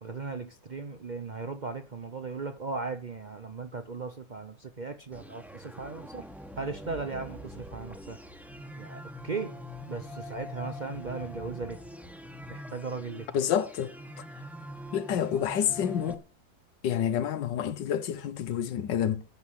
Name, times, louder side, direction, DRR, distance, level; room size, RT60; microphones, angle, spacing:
voice 1, 0.0-6.2 6.6-8.2 8.8-9.5 9.9-11.8 12.5-13.3, right 4 dB, 90° right, 0.4 m, -37 dB
sound 1, 5.1-16.1, left 1 dB, ahead, 1.3 m, -44 dB
voice 2, 13.3-13.9 14.9-16.2 16.8-19.2, left 9 dB, 70° left, 1.6 m, -28 dB
10.5 x 7.7 x 9.8 m
omnidirectional pair, 2.0 m